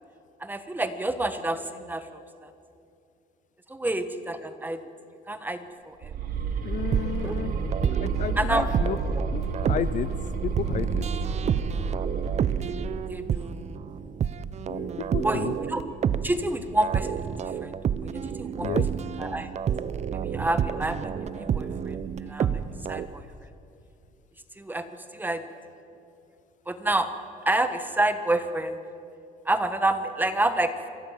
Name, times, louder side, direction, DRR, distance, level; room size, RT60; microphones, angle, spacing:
voice 1, 0.4-2.0 3.7-4.8 5.3-6.1 7.2-7.3 8.4-8.7 13.1-13.5 15.2-15.8 16.2-17.7 18.0-18.7 19.2-19.5 20.2-22.0 22.3-22.5 22.9-23.2 24.6-25.4 26.7-27.1 27.4-28.7 29.4-30.7, right 2 dB, 10° right, 9 dB, 1.5 m, -28 dB
sound 1, 6.0-13.3, right 5 dB, 55° right, 2.0 m, -30 dB
voice 2, 6.6-7.5 7.9-9.0 9.3-10.1 10.4-11.1 14.7-15.5 18.6-18.9, left 10 dB, 50° left, 15 dB, 0.6 m, -32 dB
sound 2, 6.8-23.1, right 8 dB, 40° right, 0.7 m, -30 dB
26.5 x 14.0 x 7.6 m, 2.6 s
cardioid pair, 110°, 17 cm